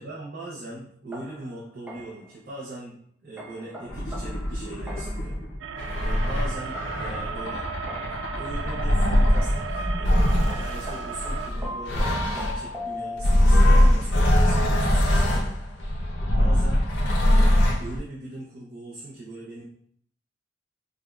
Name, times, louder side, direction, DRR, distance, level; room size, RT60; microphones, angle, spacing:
voice 1, 0.0-5.5 6.0-7.6 8.0-15.9 16.3-16.9 17.3-19.6, right 2 dB, 55° right, -6 dB, 0.8 m, -40 dB
sound 1, 1.1-2.3 3.4-5.3 6.4-8.3 9.4-13.7, left 1 dB, 10° right, 0.4 m, -39 dB
sound 2, 3.9-12.7 13.2-18.0, left 1 dB, 85° left, 0.6 m, -22 dB
sound 3, 5.6-11.5, right 6 dB, 90° right, 0.3 m, -36 dB
4.9 x 2.3 x 2.4 m, 0.64 s
head